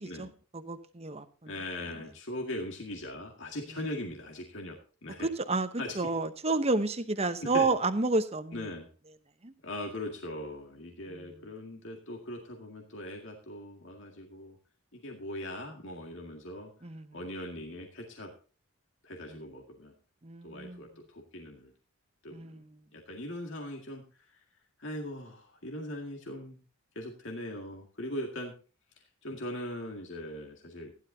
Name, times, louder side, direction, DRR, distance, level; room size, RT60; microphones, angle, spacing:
voice 1, 0.0-1.5 5.2-8.6 9.4-9.5 11.1-11.3 16.8-17.2 19.3-19.4 20.2-20.8 22.3-22.7, right 3 dB, 30° right, 0.9 m, -31 dB
voice 2, 1.4-5.3 5.8-6.1 7.2-7.7 8.5-8.9 9.6-14.6 14.9-16.7 17.1-18.3 19.0-19.9 20.4-21.7 22.2-22.6 22.9-24.4 24.8-26.6 27.0-28.5 29.0-30.9, left 1 dB, 55° left, 2.1 m, -40 dB
15.5 x 11.5 x 2.8 m
head